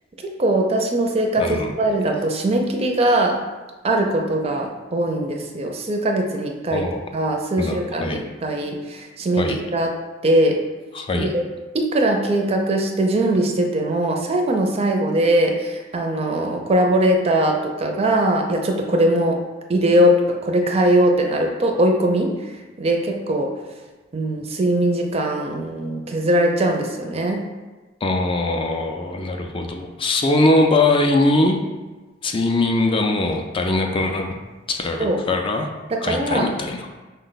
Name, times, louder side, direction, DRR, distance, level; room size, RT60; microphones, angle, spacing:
voice 1, 0.2-3.4 3.8-6.9 7.1-9.9 10.2-10.6 11.1-11.4 11.7-19.4 19.7-23.5 24.1-27.5 35.0-35.2 35.9-36.5, right 1 dB, 30° right, 2 dB, 0.4 m, -21 dB
voice 2, 1.4-1.7 6.7-7.1 7.6-8.2 9.4-9.6 10.9-11.3 28.0-31.6 32.2-34.3 34.7-35.7 36.0-36.9, left 2 dB, 30° left, 3 dB, 0.4 m, -21 dB
5.3 x 2.2 x 3.9 m, 1.2 s
head